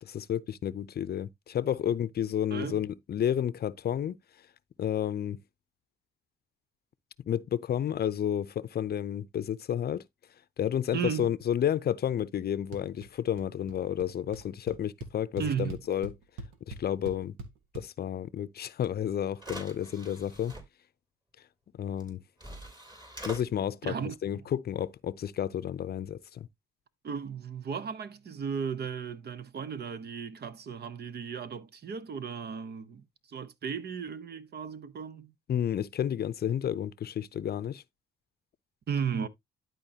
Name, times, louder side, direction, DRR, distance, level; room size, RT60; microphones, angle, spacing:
voice 1, 0.0-4.2 4.8-5.4 7.3-10.0 10.6-16.1 16.7-17.3 17.7-20.5 21.8-22.2 23.2-23.9 24.2-26.5 35.5-37.8, left 10 dB, 50° left, 0.6 m, -31 dB
voice 2, 2.5-2.8 10.9-11.3 15.4-15.7 23.8-24.1 27.0-35.3 38.9-39.3, right 7 dB, 50° right, 1.0 m, -35 dB
sound 1, 12.7-13.1 13.4-13.8 14.0-14.1 14.3-17.8, right 3 dB, 80° right, 1.4 m, -42 dB
sound 2, 18.8-18.9 19.4-20.6 22.0-22.1 22.4-23.4, right 1 dB, 20° right, 3.1 m, -43 dB
11.5 x 4.5 x 2.8 m
supercardioid pair, 65°, 21 cm